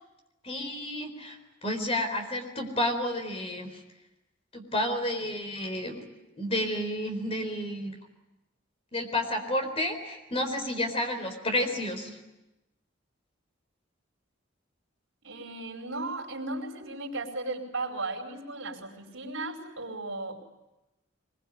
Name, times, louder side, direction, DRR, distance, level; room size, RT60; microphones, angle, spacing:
voice 1, 0.4-3.8 4.5-6.0 6.4-8.0 8.9-12.2, left 1 dB, 30° left, 5 dB, 4.2 m, -31 dB
voice 2, 15.2-20.4, right 2 dB, 80° right, 2 dB, 4.8 m, -36 dB
23.0 x 22.0 x 9.5 m, 0.98 s
head